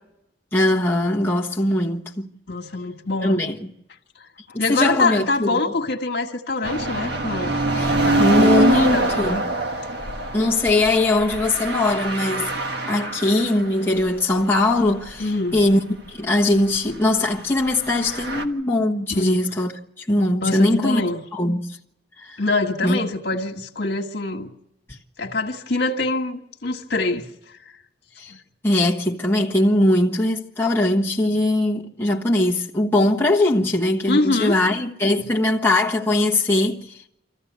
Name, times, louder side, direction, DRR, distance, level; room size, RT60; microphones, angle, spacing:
voice 1, 0.5-2.3 3.2-3.6 4.5-5.6 7.7-9.4 10.3-12.5 12.9-15.8 16.1-19.7 20.0-21.0 21.3-21.8 22.2-22.4 22.8-23.0 28.2-28.3 28.6-37.0, left 1 dB, 10° left, 1.3 m, -20 dB
voice 2, 2.5-3.4 4.1-7.6 8.0-9.4 15.2-15.6 19.1-19.4 20.4-21.2 22.4-24.5 25.2-27.6 28.3-28.4 34.1-34.6, left 2 dB, 60° left, 1.7 m, -25 dB
sound 1, 6.6-13.7 14.0-14.1 14.7-15.2 15.6-15.7 17.7-18.4, right 1 dB, 60° right, 1.6 m, -24 dB
26.5 x 14.5 x 8.3 m
head